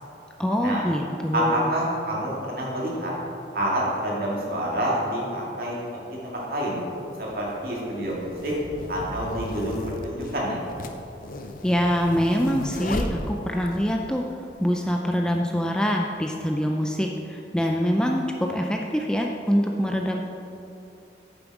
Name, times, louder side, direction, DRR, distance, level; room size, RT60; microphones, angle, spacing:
voice 1, 0.4-1.7 11.6-14.2 14.6-20.2, equal, 5° left, 1 dB, 0.4 m, -24 dB
voice 2, 1.3-3.1 3.5-5.8 6.1-6.8 7.2-8.5 8.9-10.6, equal, 55° right, -4 dB, 2.3 m, -27 dB
sound 1, 6.4-6.5 7.4-13.8, left 2 dB, 50° left, 0.6 m, -35 dB
9.1 x 6.9 x 4.8 m, 2.9 s
head